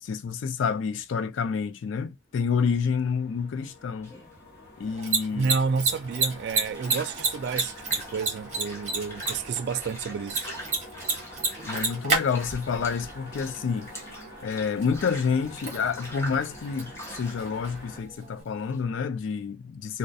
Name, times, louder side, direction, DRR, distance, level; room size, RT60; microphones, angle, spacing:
voice 1, 0.0-4.1 4.8-5.5 11.6-13.9 14.4-20.0, left 6 dB, 75° left, 0.3 m, -28 dB
sound 1, 2.4-18.0, left 1 dB, 50° left, 1.3 m, -47 dB
sound 2, 4.0-18.8, equal, 15° left, 0.6 m, -44 dB
Mechanisms, 4.8-18.4, right 4 dB, 35° right, 0.7 m, -33 dB
voice 2, 5.3-10.6, right 5 dB, 60° right, 0.3 m, -30 dB
2.3 x 2.0 x 2.6 m
head